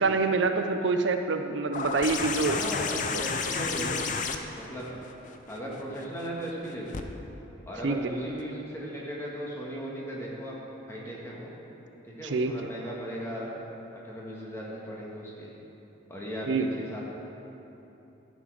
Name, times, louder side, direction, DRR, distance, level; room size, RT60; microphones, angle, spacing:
voice 1, 0.0-2.6 7.8-8.0 12.2-12.5 16.5-16.7, right 4 dB, 70° right, 7 dB, 0.5 m, -26 dB
sound 1, 1.7-7.0 8.4-8.5, left 5 dB, 40° left, 0.5 m, -33 dB
voice 2, 2.4-4.2 4.6-4.9 5.5-7.1 7.6-10.6 10.9-11.5 12.0-13.5 13.9-15.5 16.1-17.0, equal, 15° left, -5 dB, 1.6 m, -37 dB
11.5 x 7.1 x 4.9 m, 3.0 s
head